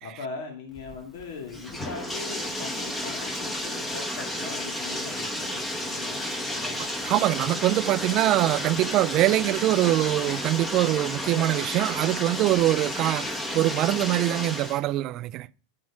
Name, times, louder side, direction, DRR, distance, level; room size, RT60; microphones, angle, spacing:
voice 1, 0.0-6.8, left 4 dB, 70° left, 2.1 m, -40 dB
Bathtub (filling or washing), 0.8-14.8, left 1 dB, 10° left, 1.0 m, -32 dB
voice 2, 6.8-15.5, right 15 dB, 35° right, 0.3 m, -24 dB
10.5 x 6.2 x 4.8 m
supercardioid pair, 160°, 0 cm